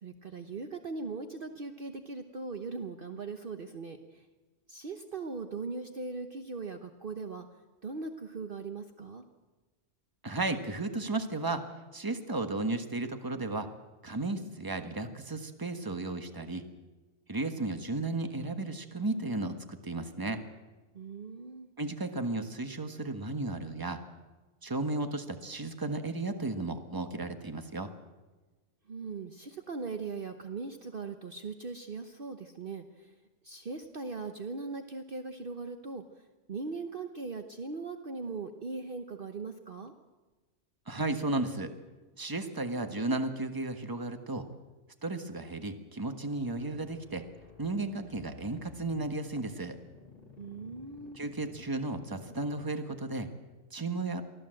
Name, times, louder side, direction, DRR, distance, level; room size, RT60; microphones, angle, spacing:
voice 1, 0.0-4.3 4.7-7.5 7.8-9.2 20.9-21.7 28.9-33.1 33.4-39.9 50.4-51.2, right 4 dB, 45° right, 6 dB, 1.1 m, -40 dB
voice 2, 10.2-11.7 11.9-13.7 14.0-16.7 17.3-20.4 21.8-24.0 24.6-27.9 40.9-41.7 42.2-44.5 45.0-47.3 47.6-49.8 51.1-53.3 53.7-54.2, right 2 dB, 15° right, 7 dB, 1.4 m, -34 dB
sound 1, 46.3-53.2, left 3 dB, 50° left, 3.9 m, -55 dB
24.0 x 15.5 x 7.7 m, 1.2 s
omnidirectional pair, 1.3 m